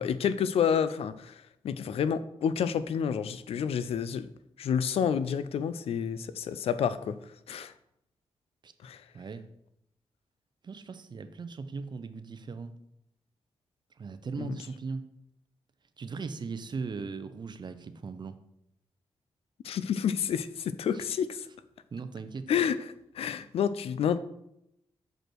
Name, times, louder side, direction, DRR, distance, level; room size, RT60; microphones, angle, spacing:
voice 1, 0.0-4.3 4.6-7.2 7.5-7.7 8.8-9.0 14.4-14.6 19.6-21.5 22.5-24.2, left 7 dB, 80° left, 13 dB, 0.5 m, -29 dB
voice 2, 10.6-12.7 14.0-15.1 16.0-18.4 20.9-21.0 21.9-22.5, right 4 dB, 50° right, 11 dB, 0.7 m, -38 dB
6.4 x 5.0 x 4.6 m, 0.80 s
cardioid pair, 75°, 10 cm